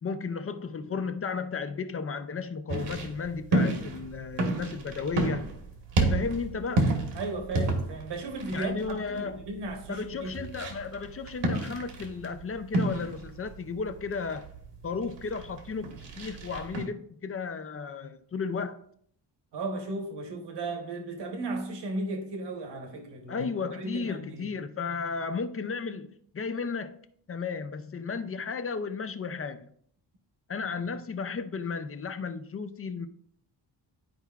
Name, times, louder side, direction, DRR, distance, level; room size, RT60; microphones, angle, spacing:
voice 1, 0.0-5.4 6.0-6.9 8.5-9.4 9.9-14.4 14.8-18.8 23.3-26.9 27.3-29.7 30.5-33.1, left 5 dB, 35° left, 0.4 m, -34 dB
sound 1, 2.7-16.8, right 2 dB, 85° right, 1.4 m, -31 dB
voice 2, 7.1-10.5 19.5-24.6, right 2 dB, 70° right, 1.1 m, -35 dB
11.5 x 4.6 x 2.3 m
wide cardioid pair, 175°, 43 cm